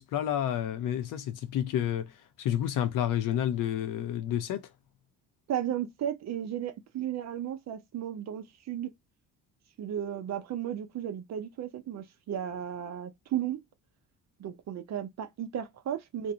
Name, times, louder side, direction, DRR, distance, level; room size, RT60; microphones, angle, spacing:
voice 1, 0.0-2.1 2.4-4.6, left 10 dB, 60° left, 0.6 m, -30 dB
voice 2, 5.5-8.9 9.8-13.6 14.4-16.3, right 10 dB, 50° right, 0.6 m, -34 dB
2.6 x 2.0 x 2.7 m
cardioid pair, 90°, 35 cm